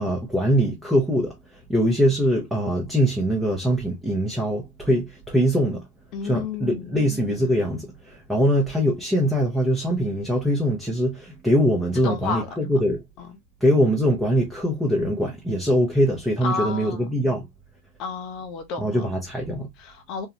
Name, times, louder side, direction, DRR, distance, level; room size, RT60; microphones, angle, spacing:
voice 1, 0.0-1.3 1.7-5.8 6.2-13.0 13.6-17.5 18.8-19.7, equal, 5° right, 0.9 m, -22 dB
voice 2, 6.1-6.9 12.0-12.5 13.2-13.3 16.4-17.0 18.0-19.1 19.8-20.3, left 4 dB, 40° left, 0.8 m, -31 dB
3.7 x 2.2 x 3.0 m
figure-of-eight pair, 90°, 0 cm